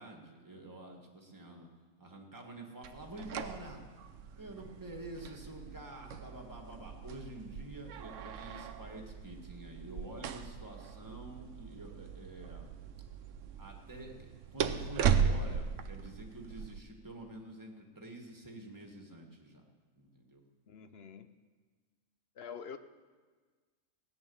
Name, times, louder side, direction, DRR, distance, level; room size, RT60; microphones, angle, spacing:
voice 1, 0.0-1.7 2.0-3.8 4.4-12.7 13.6-19.6 19.9-20.4, right 1 dB, 15° right, 1 dB, 1.8 m, -48 dB
sound 1, 2.8-16.8, right 7 dB, 60° right, 1.0 m, -37 dB
voice 2, 20.7-21.3 22.4-22.8, left 7 dB, 55° left, 10 dB, 0.8 m, -46 dB
17.5 x 9.6 x 7.1 m, 1.5 s
omnidirectional pair, 1.6 m